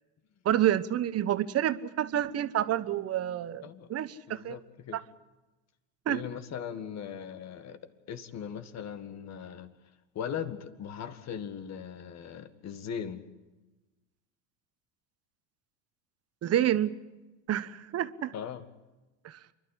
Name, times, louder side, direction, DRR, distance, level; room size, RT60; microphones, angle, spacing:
voice 1, 0.4-3.6 3.9-4.6 6.1-6.2 16.4-16.9 17.5-18.3 19.2-19.4, right 11 dB, 40° right, 13 dB, 1.1 m, -28 dB
voice 2, 3.6-3.9 4.3-5.0 6.1-9.7 10.2-13.3 18.3-18.6, left 8 dB, 45° left, 11 dB, 1.8 m, -39 dB
28.0 x 12.5 x 9.8 m, 1.1 s
hypercardioid pair, 90°, 38 cm